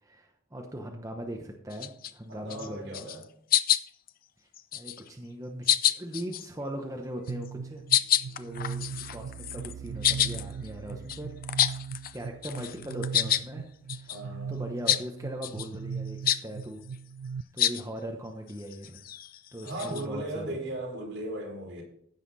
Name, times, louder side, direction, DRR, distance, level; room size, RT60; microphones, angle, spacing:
voice 1, 0.0-3.1 4.7-7.8 8.3-11.4 12.1-13.6 13.9-14.2 14.5-16.8 17.5-19.0 19.5-20.6, right 1 dB, 15° right, 2 dB, 0.9 m, -39 dB
sound 1, 1.7-2.1 2.5-2.7 2.9-3.2 3.5-4.1 4.5-5.1 5.7-6.5 7.3-7.5 7.9-12.2 12.4-13.5 13.9-14.2 14.9-15.0 15.4-15.7 16.3-16.4 17.6-17.8 18.5-20.0, left 11 dB, 45° left, 0.5 m, -28 dB
voice 2, 2.3-3.2 14.1-14.6 19.6-21.8, right 1 dB, 70° right, -2 dB, 4.9 m, -37 dB
sound 2, 7.3-17.4, right 6 dB, 85° right, 0.3 m, -39 dB
15.5 x 5.8 x 4.2 m, 0.65 s
head